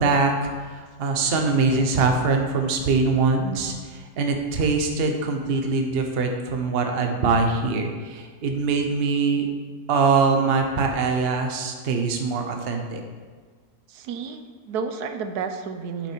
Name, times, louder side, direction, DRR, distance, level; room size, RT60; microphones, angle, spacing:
voice 1, 0.0-9.5 9.9-13.0, right 4 dB, 45° right, 4 dB, 1.0 m, -23 dB
voice 2, 13.9-16.1, right 5 dB, 75° right, 8 dB, 1.1 m, -31 dB
8.9 x 7.2 x 4.5 m, 1.5 s
omnidirectional pair, 1.8 m